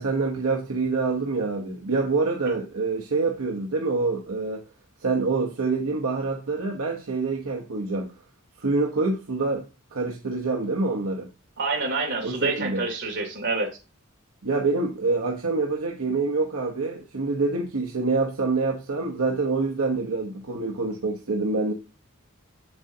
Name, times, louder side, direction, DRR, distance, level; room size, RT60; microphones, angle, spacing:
voice 1, 0.0-4.6 5.0-8.1 8.6-9.7 9.9-11.3 12.2-12.8 14.4-21.7, right 3 dB, 80° right, 1.0 m, -26 dB
voice 2, 11.6-13.7, right 3 dB, 55° right, 2.7 m, -27 dB
7.6 x 7.6 x 2.8 m
head